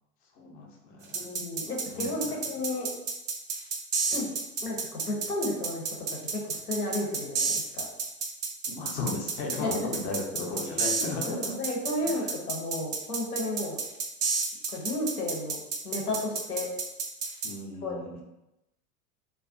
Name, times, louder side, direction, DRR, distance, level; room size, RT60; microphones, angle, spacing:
voice 1, 0.4-1.3 1.9-2.4 8.7-11.5 17.4-18.2, left 3 dB, 20° left, -1 dB, 0.3 m, -35 dB
voice 2, 1.1-2.9 4.1-4.3 4.6-5.8 6.3-7.8 9.5-9.9 10.7-13.8 14.7-16.7 17.8-18.0, left 1 dB, 90° left, -1 dB, 0.7 m, -33 dB
sound 1, 1.1-17.5, right 5 dB, 85° right, 0.6 m, -30 dB
2.3 x 2.2 x 2.5 m, 0.94 s
figure-of-eight pair, 85°, 44 cm